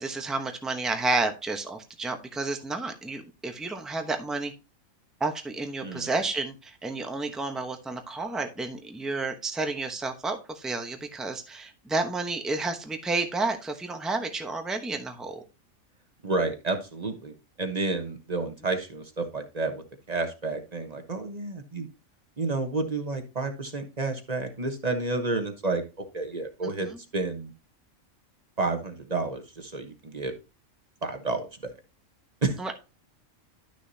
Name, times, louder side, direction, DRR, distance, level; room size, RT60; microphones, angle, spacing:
voice 1, 0.0-4.5 5.2-15.4 26.9-27.0 32.6-32.7, right 3 dB, ahead, 5 dB, 0.8 m, -31 dB
voice 2, 16.2-17.3 17.6-21.9 22.4-25.8 26.1-27.5 28.6-30.3 31.0-31.5 32.4-32.6, right 3 dB, 30° right, 5 dB, 1.1 m, -30 dB
11.5 x 6.3 x 2.8 m, 0.29 s
omnidirectional pair, 1.4 m